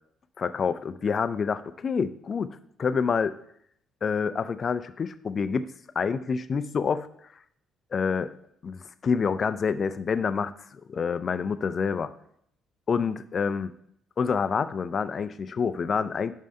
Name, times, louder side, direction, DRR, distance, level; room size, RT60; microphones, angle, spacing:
voice 1, 0.4-3.3 4.0-5.7 6.0-7.1 7.9-8.3 8.6-12.1 12.9-13.7 14.2-16.3, left 5 dB, 45° left, 13 dB, 0.4 m, -27 dB
5.5 x 5.4 x 5.3 m, 0.70 s
hypercardioid pair, 55°, 0 cm